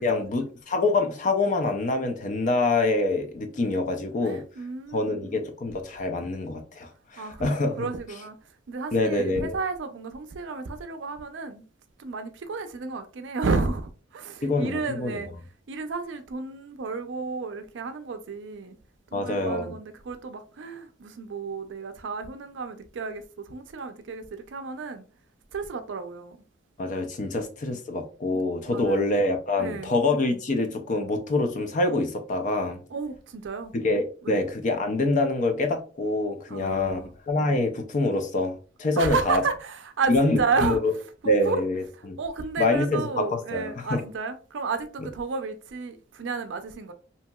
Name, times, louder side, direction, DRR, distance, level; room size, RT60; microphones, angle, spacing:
voice 1, 0.0-4.4 4.9-7.9 8.9-9.6 14.4-15.2 19.1-19.7 26.8-32.8 33.7-39.4 40.1-40.9 41.2-42.2 42.6-44.0, left 2 dB, 40° left, 0.4 m, -25 dB
voice 2, 4.2-5.3 7.2-8.4 8.7-11.6 12.0-15.3 15.7-18.7 19.1-25.0 25.5-26.4 27.2-27.4 28.3-29.1 29.6-29.9 32.9-33.7 34.2-34.4 36.5-37.1 39.0-40.8 41.4-41.6 42.2-46.9, right 4 dB, 65° right, 0.4 m, -32 dB
2.8 x 2.7 x 2.2 m
head